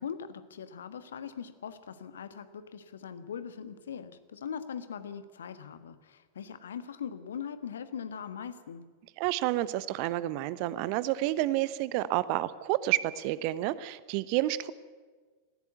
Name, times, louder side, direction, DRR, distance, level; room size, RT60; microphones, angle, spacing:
voice 1, 0.0-8.9, left 7 dB, 65° left, 12 dB, 1.3 m, -41 dB
voice 2, 9.2-14.7, right 15 dB, 45° right, 17 dB, 0.8 m, -29 dB
19.0 x 16.0 x 9.3 m, 1.4 s
figure-of-eight pair, 90°, 0 cm